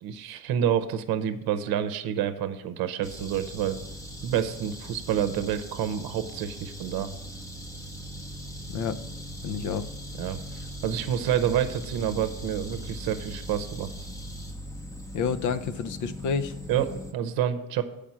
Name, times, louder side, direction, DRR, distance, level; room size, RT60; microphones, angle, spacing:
voice 1, 0.0-3.8 4.2-7.1 10.2-10.4 10.8-13.9 16.7-17.8, right 9 dB, 70° right, 11 dB, 0.8 m, -28 dB
sound 1, 3.0-17.1, equal, 10° left, 0.7 m, -40 dB
voice 2, 9.4-9.9 15.1-16.5, left 6 dB, 55° left, 11 dB, 0.6 m, -29 dB
7.6 x 5.0 x 7.0 m, 0.90 s
cardioid pair, 135°, 37 cm